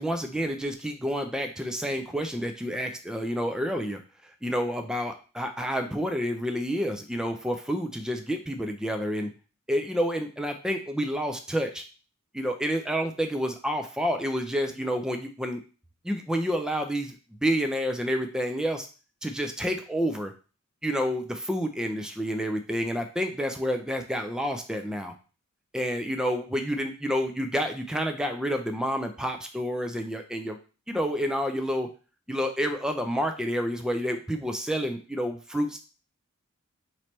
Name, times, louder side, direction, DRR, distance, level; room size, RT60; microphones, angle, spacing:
voice 1, 0.0-4.0 4.4-9.3 9.7-11.8 12.3-15.6 16.0-17.2 17.4-18.9 19.2-20.3 20.8-25.1 25.7-30.6 30.9-31.9 32.3-35.8, equal, 5° right, 5 dB, 0.4 m, -29 dB
3.1 x 3.0 x 4.3 m, 0.35 s
head